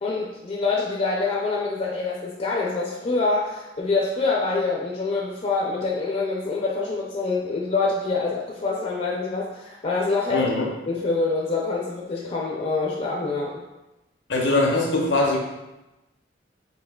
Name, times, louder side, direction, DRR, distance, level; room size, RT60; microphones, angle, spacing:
voice 1, 0.0-10.4 10.9-13.6, left 3 dB, 35° left, -3 dB, 0.4 m, -25 dB
voice 2, 10.3-10.7 14.3-15.4, left 2 dB, 90° left, 0 dB, 0.7 m, -21 dB
4.3 x 3.5 x 2.3 m, 1.0 s
head